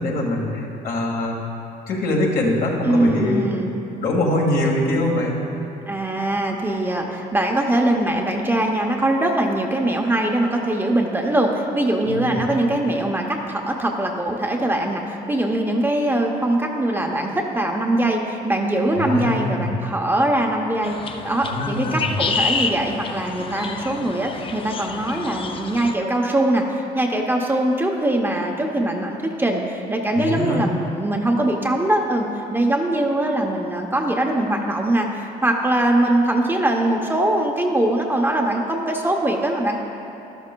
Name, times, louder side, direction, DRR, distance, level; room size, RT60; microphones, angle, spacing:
voice 1, 0.0-1.4 1.9-3.4 4.0-5.4 12.1-12.4 19.0-19.8 21.4-22.2 30.1-30.7, left 1 dB, 60° left, -1 dB, 1.8 m, -23 dB
voice 2, 2.8-3.7 5.9-21.0 21.2-39.8, right 1 dB, 10° right, 1 dB, 0.7 m, -22 dB
sound 1, 20.8-25.9, left 5 dB, 30° left, 0.5 m, -28 dB
12.5 x 11.5 x 2.3 m, 2.9 s
cardioid pair, 110°, 17 cm